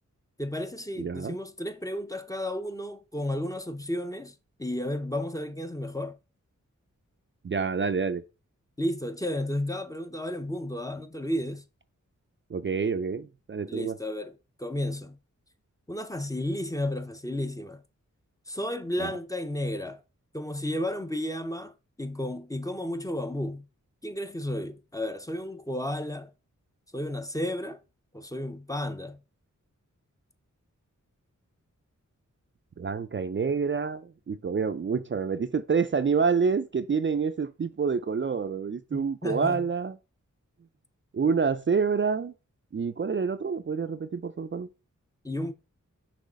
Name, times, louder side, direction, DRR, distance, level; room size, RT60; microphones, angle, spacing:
voice 1, 0.4-6.2 8.8-11.6 13.7-15.2 15.9-17.8 18.5-20.0 20.3-21.7 22.0-23.7 24.0-26.3 26.9-27.8 28.1-29.2 38.9-39.6 45.2-45.5, left 1 dB, 10° left, 0.6 m, -33 dB
voice 2, 1.0-1.4 7.4-8.2 12.5-14.0 19.0-19.1 32.8-40.0 41.1-42.3 42.7-44.7, right 5 dB, 40° right, 0.4 m, -27 dB
6.3 x 3.0 x 5.1 m
wide cardioid pair, 70°, 31 cm